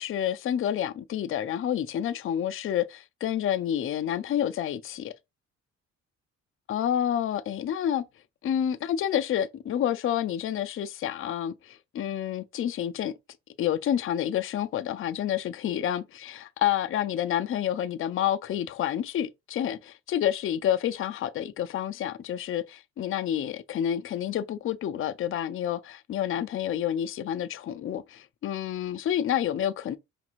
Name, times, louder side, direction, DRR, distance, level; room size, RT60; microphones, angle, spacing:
voice 1, 0.0-5.1 6.7-8.0 8.4-13.1 13.6-30.0, left 10 dB, 45° left, 0.4 m, -29 dB
5.0 x 3.0 x 2.4 m
cardioid pair, 90°, 30 cm